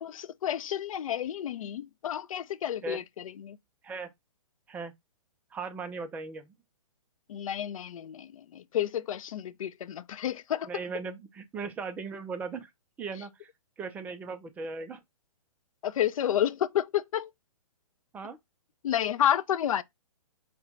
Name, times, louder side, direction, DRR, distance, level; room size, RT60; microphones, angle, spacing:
voice 1, 0.0-3.6 7.3-10.7 15.8-17.3 18.8-19.8, left 10 dB, 65° left, 0.5 m, -30 dB
voice 2, 5.5-6.5 10.7-12.7 13.0-13.5 13.8-15.0 18.1-18.4, right 4 dB, 10° right, 0.4 m, -38 dB
4.3 x 2.2 x 3.8 m
hypercardioid pair, 135°, 19 cm